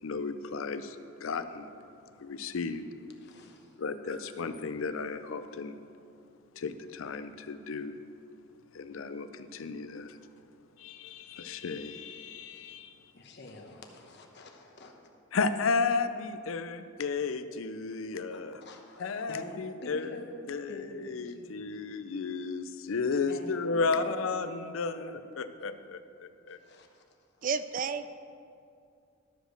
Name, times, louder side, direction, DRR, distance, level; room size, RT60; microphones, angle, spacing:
voice 1, 0.0-1.7 2.2-2.9 3.8-5.8 6.6-7.9 8.7-10.2 10.8-13.0 15.3-18.6 19.0-20.2 20.5-26.6, left 4 dB, 75° left, 10 dB, 0.5 m, -33 dB
voice 2, 3.2-3.8 4.1-4.2 13.1-15.0 18.3-20.4 20.7-21.7 23.3-24.8 25.1-25.4 26.5-27.0 27.4-27.5, left 1 dB, 55° left, 2 dB, 1.1 m, -48 dB
voice 3, 27.4-28.1, right 5 dB, 40° right, 12 dB, 0.3 m, -31 dB
12.5 x 5.1 x 6.4 m, 2.5 s
head